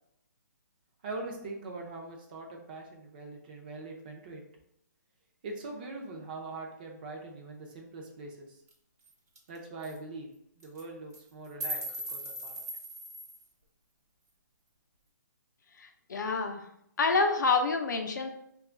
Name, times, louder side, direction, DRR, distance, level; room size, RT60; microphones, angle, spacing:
voice 1, 1.0-4.4 5.4-8.6 9.5-10.3 10.6-12.6, right 2 dB, 25° right, 1 dB, 0.5 m, -42 dB
sound 1, 8.7-8.8 9.1-9.2 9.4-9.6 9.8-10.0 10.6-10.8 11.1-13.5, right 1 dB, 50° right, 0.9 m, -38 dB
voice 2, 15.8-16.6 17.0-18.3, left 4 dB, 70° left, 5 dB, 0.5 m, -27 dB
2.9 x 2.3 x 3.7 m, 0.76 s
hypercardioid pair, 165°, 10 cm